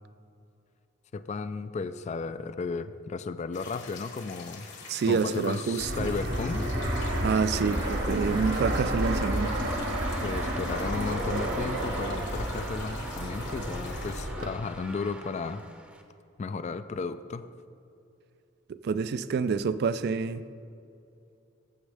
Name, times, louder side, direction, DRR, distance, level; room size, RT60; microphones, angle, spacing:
voice 1, 1.1-4.7 5.1-6.7 10.2-15.6 16.4-17.5, left 4 dB, 35° left, 12 dB, 0.3 m, -34 dB
sound 1, 3.5-14.3, left 4 dB, 60° left, 1.4 m, -46 dB
voice 2, 4.9-6.1 7.2-9.5 18.7-20.4, right 5 dB, 55° right, 15 dB, 0.3 m, -27 dB
Fixed-wing aircraft airplane, 5.8-14.5, right 1 dB, 70° right, 1.6 m, -31 dB
sound 2, 7.7-16.0, right 1 dB, 5° right, 0.7 m, -44 dB
14.5 x 7.2 x 3.4 m, 2.6 s
head